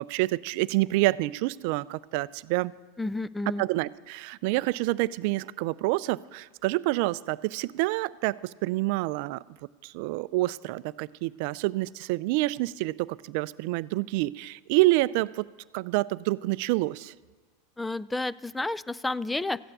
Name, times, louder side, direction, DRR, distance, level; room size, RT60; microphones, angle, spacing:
voice 1, 0.0-2.7 3.6-9.4 9.8-15.5 15.7-17.1, right 19 dB, 60° right, 18 dB, 0.4 m, -27 dB
voice 2, 3.0-3.6 17.8-19.6, left 2 dB, 10° left, 18 dB, 0.4 m, -31 dB
14.5 x 8.8 x 8.0 m, 1.4 s
hypercardioid pair, 100°, 0 cm